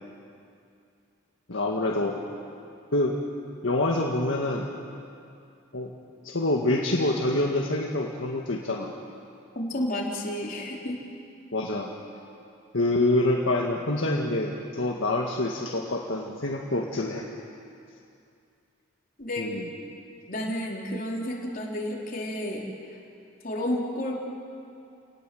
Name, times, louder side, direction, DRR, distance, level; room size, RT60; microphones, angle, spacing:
voice 1, 1.5-2.2 2.9-3.2 3.6-4.7 5.7-5.9 6.2-8.9 11.5-11.9 12.7-17.3 19.4-19.7, left 2 dB, 65° left, -1 dB, 1.9 m, -26 dB
voice 2, 9.6-11.0 19.2-19.5 20.3-22.6 23.4-24.2, left 1 dB, 45° left, -2 dB, 4.1 m, -31 dB
28.5 x 19.5 x 7.9 m, 2.5 s
head